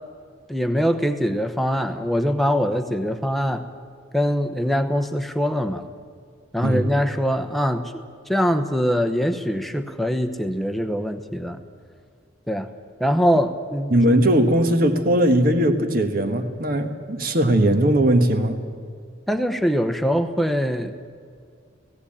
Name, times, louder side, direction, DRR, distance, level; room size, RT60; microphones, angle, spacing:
voice 1, 0.5-3.7 4.1-5.9 6.5-7.9 8.3-11.6 12.5-12.7 13.0-13.9 19.3-20.9, equal, ahead, 7 dB, 0.9 m, -23 dB
voice 2, 13.9-18.7, right 1 dB, 45° right, 7 dB, 1.5 m, -19 dB
17.5 x 17.0 x 8.7 m, 2.2 s
head